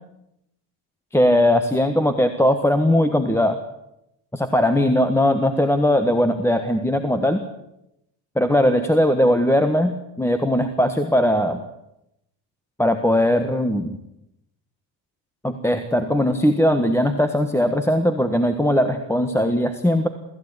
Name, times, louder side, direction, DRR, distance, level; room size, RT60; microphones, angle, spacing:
voice 1, 1.1-3.6 4.3-7.4 8.3-11.6 12.8-14.0 15.4-20.1, left 1 dB, 5° left, 5 dB, 1.4 m, -19 dB
23.0 x 15.0 x 9.7 m, 0.84 s
cardioid pair, 115°, 45 cm